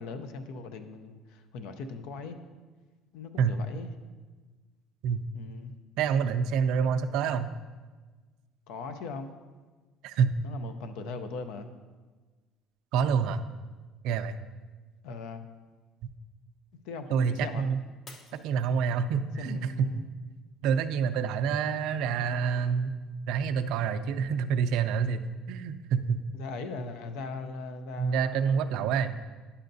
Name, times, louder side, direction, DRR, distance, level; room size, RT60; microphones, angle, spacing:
voice 1, 0.0-2.4 3.1-3.9 5.3-5.7 8.7-9.3 10.4-11.7 15.0-15.4 16.7-17.7 19.4-20.1 26.3-28.9, left 4 dB, 80° left, 9 dB, 0.5 m, -39 dB
voice 2, 6.0-7.5 10.0-10.3 12.9-13.4 14.0-14.4 17.1-17.8 18.4-19.9 20.6-23.0 23.3-25.2 25.5-26.2 28.0-29.2, right 6 dB, 75° right, 10 dB, 0.4 m, -27 dB
Shatter, 18.1-19.3 19.9-20.3 20.9-21.0, left 2 dB, 40° left, 0.9 m, -53 dB
10.0 x 5.6 x 2.6 m, 1.3 s
supercardioid pair, 100°, 0 cm